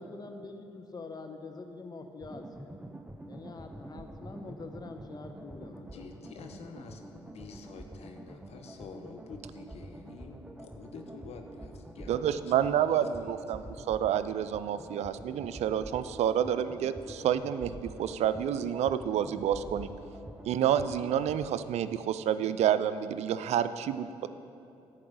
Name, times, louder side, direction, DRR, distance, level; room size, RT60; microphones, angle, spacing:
voice 1, 0.0-2.8 3.3-6.0, left 3 dB, 35° left, 5 dB, 1.1 m, -45 dB
sound 1, 2.2-21.5, right 1 dB, 10° right, 0.6 m, -47 dB
voice 2, 5.8-13.6, left 4 dB, 60° left, 4 dB, 1.1 m, -48 dB
voice 3, 12.1-19.9 20.5-24.3, right 9 dB, 65° right, 13 dB, 0.4 m, -29 dB
11.0 x 4.7 x 7.9 m, 2.7 s
hypercardioid pair, 55°, 12 cm